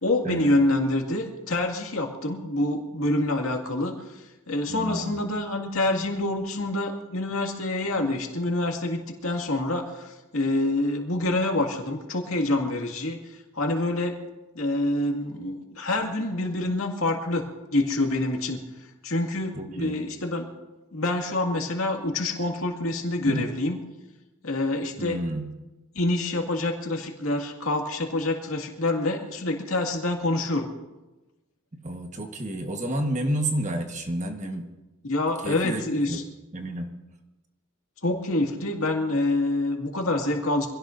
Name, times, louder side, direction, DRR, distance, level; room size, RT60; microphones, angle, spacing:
voice 1, 0.0-4.0 4.5-13.2 13.5-14.1 14.5-18.6 19.0-20.5 20.9-23.8 24.4-25.2 26.0-30.7 35.1-36.2 38.0-40.7, left 2 dB, 70° left, 1 dB, 2.2 m, -26 dB
voice 2, 4.7-5.2 19.5-20.0 23.2-23.5 25.0-25.5 31.7-34.7 35.4-35.8 36.1-36.2 36.5-36.9, right 1 dB, 35° right, 4 dB, 1.3 m, -30 dB
25.5 x 17.0 x 2.6 m, 1.1 s
head